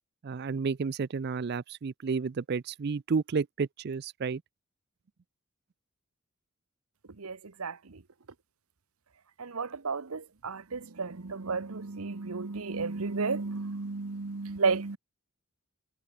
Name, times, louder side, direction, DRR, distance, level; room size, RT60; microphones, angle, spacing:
voice 1, 0.2-4.4, right 5 dB, 45° right, 0.4 m, -31 dB
voice 2, 7.2-8.0 9.4-15.0, right 4 dB, 80° right, 1.0 m, -33 dB
head